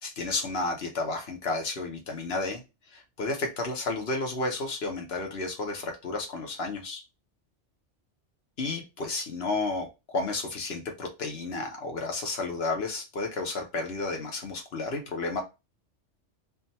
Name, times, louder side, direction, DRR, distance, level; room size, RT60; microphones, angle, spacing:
voice 1, 0.0-2.6 2.9-7.0 8.6-9.9 10.1-15.4, left 3 dB, 60° left, 3 dB, 1.3 m, -32 dB
3.5 x 2.5 x 4.2 m, 0.26 s
omnidirectional pair, 1.2 m